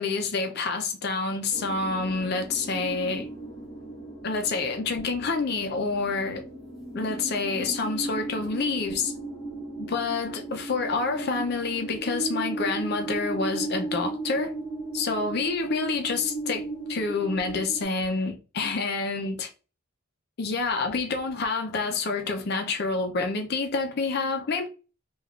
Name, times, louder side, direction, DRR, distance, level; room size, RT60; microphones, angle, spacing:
voice 1, 0.0-3.3 4.2-6.4 6.9-9.1 9.8-14.5 14.9-19.5 20.4-24.7, left 4 dB, 50° left, 0.4 m, -28 dB
sound 1, 1.5-17.8, right 2 dB, ahead, 0.9 m, -36 dB
3.4 x 2.3 x 2.3 m
head